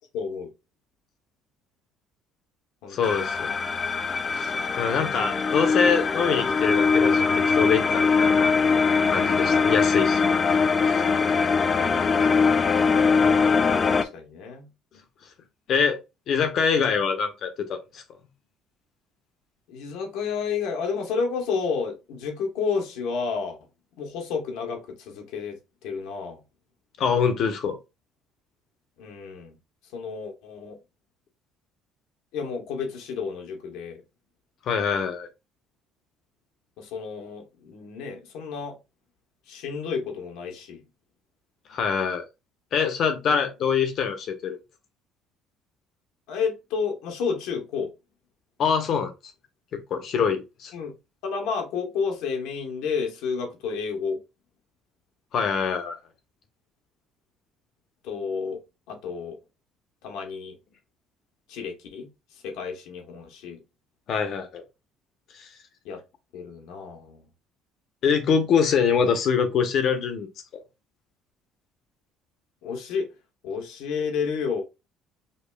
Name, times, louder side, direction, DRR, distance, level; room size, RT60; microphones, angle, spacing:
voice 1, 0.1-0.5 2.8-3.2 11.6-12.4 13.9-14.7 19.7-23.6 24.0-26.4 29.0-29.6 29.9-30.8 32.3-34.0 36.8-38.8 39.5-40.8 46.3-47.9 50.7-50.9 51.2-54.2 58.0-58.6 58.9-59.3 60.0-60.6 61.5-62.1 62.3-63.6 65.8-66.0 66.3-67.2 72.6-73.1 73.4-74.6, left 5 dB, 85° left, 1.0 m, -31 dB
voice 2, 2.9-3.5 4.4-4.5 4.8-8.5 9.1-10.3 10.8-11.0 15.7-16.0 16.3-18.0 27.0-27.8 34.7-35.3 41.7-42.2 42.7-44.6 48.6-49.1 49.7-50.7 55.3-56.0 64.1-64.6 65.4-65.5 68.0-70.3 70.5-70.6, left 6 dB, 55° left, 0.8 m, -24 dB
sound 1, 3.0-14.0, left 5 dB, 30° left, 0.3 m, -22 dB
5.3 x 2.3 x 2.2 m
cardioid pair, 120°, 0 cm